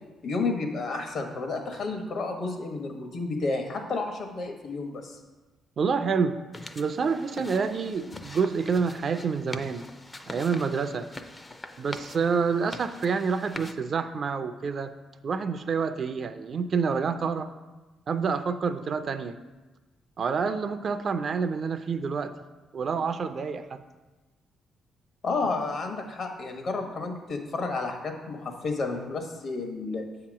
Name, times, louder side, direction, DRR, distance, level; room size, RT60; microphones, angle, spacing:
voice 1, 0.2-5.2 25.2-30.0, left 3 dB, 60° left, 4 dB, 1.1 m, -31 dB
voice 2, 5.8-6.4 6.8-9.9 10.2-11.1 11.8-15.0 15.2-17.5 18.1-19.4 20.2-22.3 22.7-23.8, right 5 dB, 50° right, 10 dB, 0.4 m, -28 dB
sound 1, 6.5-13.7, left 2 dB, 20° left, 0.4 m, -43 dB
7.5 x 2.9 x 6.1 m, 1.2 s
cardioid pair, 90°, 0 cm